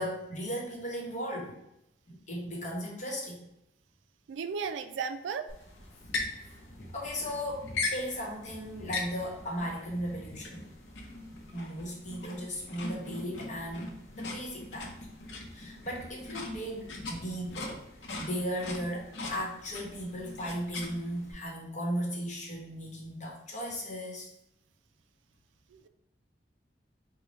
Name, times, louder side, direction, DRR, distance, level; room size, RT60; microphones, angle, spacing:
voice 1, 0.0-1.6 2.1-3.4 6.3-6.6 6.9-10.6 11.5-14.9 15.5-17.8 18.2-24.3, equal, 45° left, -2 dB, 1.0 m, -36 dB
voice 2, 4.3-5.5 25.7-25.9, right 6 dB, 80° right, 10 dB, 0.3 m, -35 dB
sound 1, 5.5-21.3, left 3 dB, 75° left, 0.7 m, -40 dB
3.3 x 2.2 x 4.0 m, 0.81 s
head